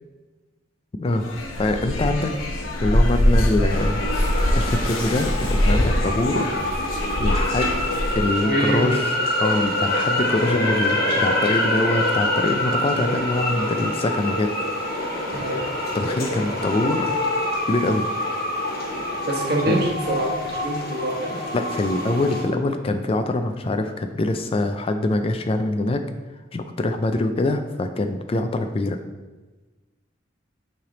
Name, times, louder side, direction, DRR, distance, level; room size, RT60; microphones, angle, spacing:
sound 1, 1.1-8.3, left 1 dB, 90° left, 0.9 m, -23 dB
voice 1, 1.6-2.3 2.8-4.0 4.5-6.5 6.8-7.8 8.1-14.5 15.9-17.2 17.7-18.1 19.6-19.8 21.5-26.1 26.5-29.0, left 2 dB, 30° left, 7 dB, 0.4 m, -24 dB
sound 2, 3.7-22.4, left 1 dB, 50° left, 1.4 m, -26 dB
voice 2, 8.4-9.0 15.3-15.7 19.3-21.5, right 1 dB, 50° right, -1 dB, 1.2 m, -25 dB
8.6 x 3.3 x 3.8 m, 1.2 s
head